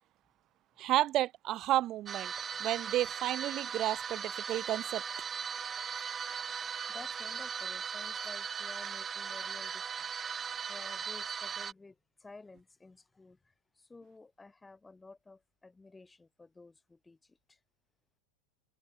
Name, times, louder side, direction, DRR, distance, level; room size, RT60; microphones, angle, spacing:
voice 1, 0.8-2.3 2.6-5.0, right 14 dB, 40° right, 1.1 m, -31 dB
sound 1, 2.1-11.7, right 7 dB, 25° right, 0.9 m, -38 dB
voice 2, 6.9-10.1 10.7-17.6, left 3 dB, 10° left, 4.4 m, -53 dB
hypercardioid pair, 115°, 0 cm